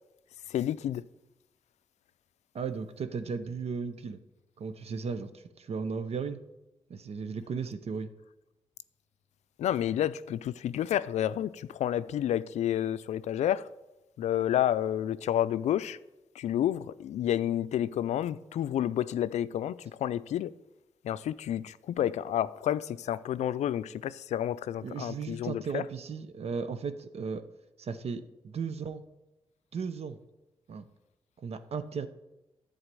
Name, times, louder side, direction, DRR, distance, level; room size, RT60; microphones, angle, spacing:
voice 1, 0.5-1.0 9.6-13.7 14.2-16.0 16.3-20.5 21.0-25.8, left 11 dB, 85° left, 0.4 m, -30 dB
voice 2, 2.5-4.2 4.6-6.4 6.9-8.1 24.8-27.4 27.8-29.0 29.7-30.2 30.7-30.9 31.4-32.1, right 5 dB, 65° right, 0.8 m, -35 dB
11.0 x 4.0 x 7.6 m
cardioid pair, 65°, 11 cm